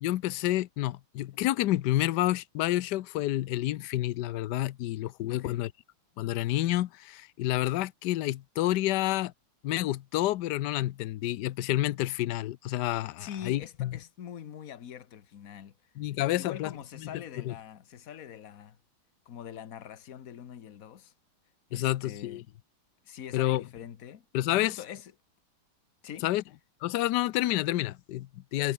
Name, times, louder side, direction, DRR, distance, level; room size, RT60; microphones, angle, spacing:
voice 1, 0.0-5.7 6.2-9.3 9.6-13.9 16.0-16.7 17.0-17.1 17.4-17.5 21.7-22.4 23.3-23.6 24.3-24.7 26.2-26.4 26.8-28.7, left 15 dB, 70° left, 1.1 m, -29 dB
voice 2, 5.3-5.6 13.2-15.7 16.4-18.8 19.2-21.1 21.7-22.5 23.0-24.3 24.5-25.1 26.0-26.3, left 9 dB, 50° left, 1.4 m, -43 dB
omnidirectional pair, 2.3 m